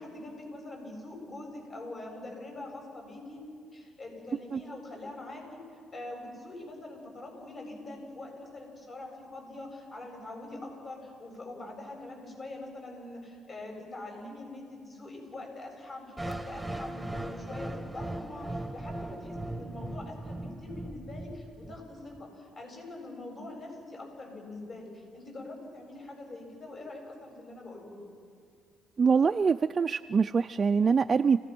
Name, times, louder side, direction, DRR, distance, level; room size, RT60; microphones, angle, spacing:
voice 1, 0.0-3.4 3.7-5.4 5.9-28.0, left 2 dB, 40° left, 0 dB, 7.7 m, -43 dB
sound 1, 16.2-22.2, right 1 dB, 5° right, 1.2 m, -38 dB
voice 2, 29.0-31.4, right 5 dB, 35° right, 6 dB, 0.4 m, -24 dB
29.5 x 18.0 x 6.1 m, 2.3 s
cardioid pair, 90°, 0 cm